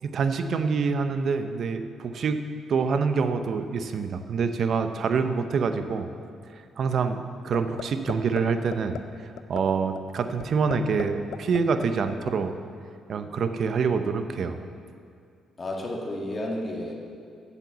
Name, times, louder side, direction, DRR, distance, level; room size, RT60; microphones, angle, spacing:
voice 1, 0.0-2.4 2.7-6.1 6.8-9.0 9.5-12.5 13.1-14.6, right 5 dB, 60° right, 8 dB, 0.7 m, -26 dB
sound 1, 7.5-7.8 8.1-8.4 8.7-9.0 9.4-9.6 9.9-10.0 10.4-11.0 11.3-12.3, left 10 dB, 75° left, 0.5 m, -34 dB
voice 2, 15.6-16.9, left 1 dB, 30° left, -1 dB, 1.9 m, -31 dB
8.0 x 7.3 x 8.2 m, 2.3 s
cardioid pair, 90°, 0 cm